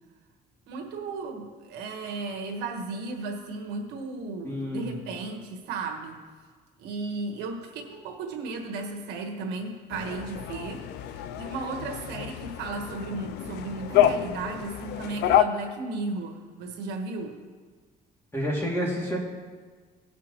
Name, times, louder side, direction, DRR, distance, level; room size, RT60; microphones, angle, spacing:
voice 1, 0.7-6.2 6.8-17.4, right 3 dB, 85° right, 2 dB, 1.4 m, -35 dB
voice 2, 4.4-4.9 18.3-19.2, equal, 15° left, -3 dB, 2.5 m, -29 dB
sound 1, 9.9-15.4, left 11 dB, 80° left, 0.5 m, -27 dB
18.0 x 6.1 x 3.0 m, 1.5 s
cardioid pair, 110°, 17 cm